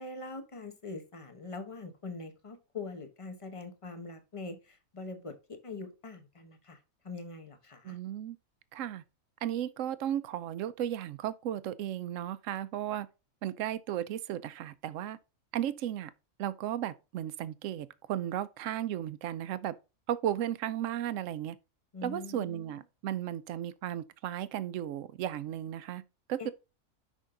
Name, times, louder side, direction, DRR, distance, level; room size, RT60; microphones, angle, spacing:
voice 1, 0.0-6.8 7.0-8.0 21.9-22.8 26.4-26.5, left 3 dB, 25° left, 1.0 m, -43 dB
voice 2, 7.8-8.4 8.7-9.0 9.4-13.1 13.4-15.2 15.5-16.1 16.4-19.7 20.1-21.6 22.0-26.0 26.3-26.5, right 11 dB, 65° right, 0.9 m, -35 dB
6.4 x 5.4 x 3.8 m
omnidirectional pair, 1.5 m